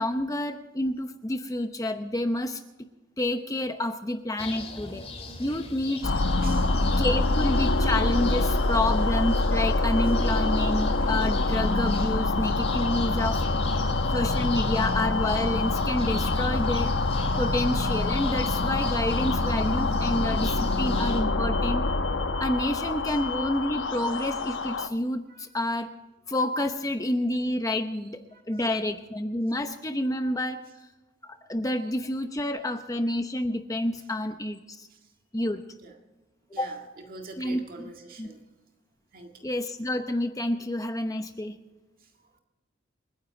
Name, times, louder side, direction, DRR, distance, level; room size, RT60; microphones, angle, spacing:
voice 1, 0.0-2.6 3.2-5.0 5.4-6.6 7.0-13.4 14.1-16.9 17.4-21.9 22.4-25.9 26.3-28.2 28.5-30.6 31.2-34.9 35.3-35.6 36.6-36.7 37.4-37.9 38.2-38.3 39.4-41.6, left 1 dB, 15° left, 7 dB, 0.8 m, -29 dB
sound 1, 4.4-21.2, left 3 dB, 35° left, 3.3 m, -40 dB
sound 2, 6.0-24.9, left 2 dB, 65° left, 1.0 m, -25 dB
voice 2, 6.4-6.7 10.1-10.2 20.6-20.8 23.1-23.2 25.3-25.5 28.3-28.8 34.9-35.1 35.8-35.9 36.5-36.8 37.1-38.4 39.1-39.5 42.0-42.1, right 3 dB, 45° right, 2 dB, 1.9 m, -45 dB
28.0 x 10.0 x 3.9 m, 1.1 s
head